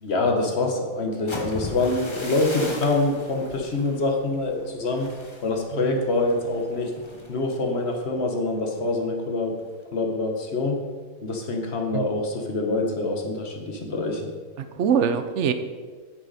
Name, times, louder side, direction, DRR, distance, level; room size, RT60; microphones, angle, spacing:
voice 1, 0.0-5.1 5.4-6.9 7.3-9.6 9.9-10.9 11.2-14.2, left 2 dB, 50° left, 2 dB, 1.5 m, -25 dB
sound 1, 1.1-9.0 9.3-9.7 10.0-10.4, left 1 dB, 20° left, 1.0 m, -39 dB
voice 2, 14.6-15.5, right 7 dB, 60° right, 9 dB, 0.9 m, -24 dB
9.4 x 8.1 x 4.2 m, 1.5 s
omnidirectional pair, 1.5 m